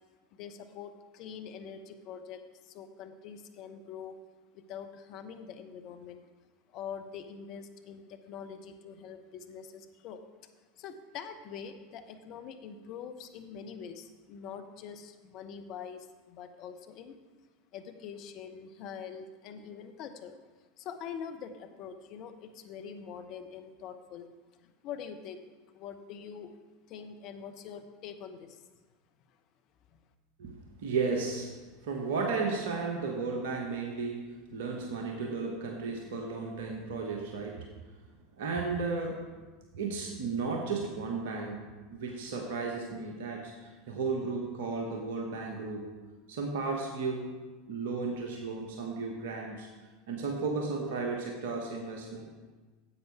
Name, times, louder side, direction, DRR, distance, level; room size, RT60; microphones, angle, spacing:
voice 1, 0.3-4.2 4.5-6.2 6.7-10.2 10.8-17.2 17.7-20.4 20.8-24.3 24.6-25.4 25.7-26.5 26.9-28.7 29.9-30.0, left 7 dB, 50° left, 7 dB, 0.9 m, -44 dB
voice 2, 30.8-31.5 31.8-37.6 38.4-39.3 39.7-45.8 46.3-47.3 47.7-49.7 50.1-52.3, right 4 dB, 65° right, 1 dB, 1.2 m, -34 dB
9.9 x 8.0 x 4.7 m, 1.3 s
figure-of-eight pair, 80°, 0 cm